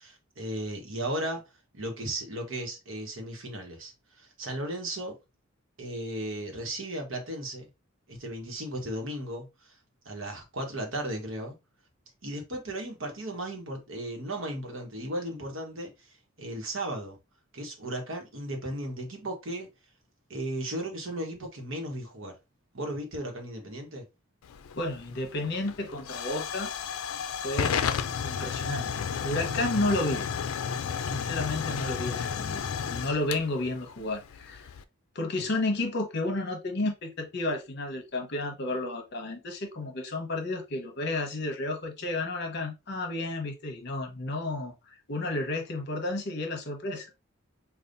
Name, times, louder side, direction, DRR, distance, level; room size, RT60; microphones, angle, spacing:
voice 1, 0.0-1.4 1.7-5.2 5.8-7.7 8.1-9.8 10.0-11.5 12.2-17.2 17.5-19.7 20.3-22.3 22.7-24.1 35.4-35.5, right 1 dB, 70° right, 1.1 m, -35 dB
Hiss / Fire / Tick, 24.4-34.8, left 7 dB, 85° left, 0.4 m, -33 dB
voice 2, 24.8-26.7 27.4-27.9 28.2-30.2 31.1-32.6 32.9-34.7 35.1-44.7 45.1-47.1, left 2 dB, 55° left, 1.0 m, -32 dB
5.1 x 2.4 x 2.6 m
head